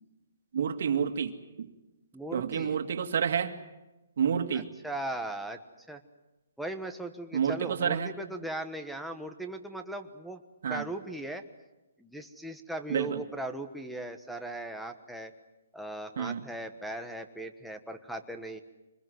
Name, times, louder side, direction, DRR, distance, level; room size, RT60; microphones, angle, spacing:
voice 1, 0.5-1.7 2.3-3.6 4.2-4.7 7.3-8.1 10.6-10.9 12.9-13.2 16.2-16.4, right 7 dB, 60° right, 7 dB, 2.1 m, -29 dB
voice 2, 2.1-2.8 4.5-5.6 5.9-6.0 6.6-10.4 10.7-11.4 12.0-15.3 15.7-18.6, right 1 dB, ahead, 8 dB, 1.2 m, -38 dB
26.0 x 21.0 x 7.9 m, 1.1 s
hypercardioid pair, 160°, 0 cm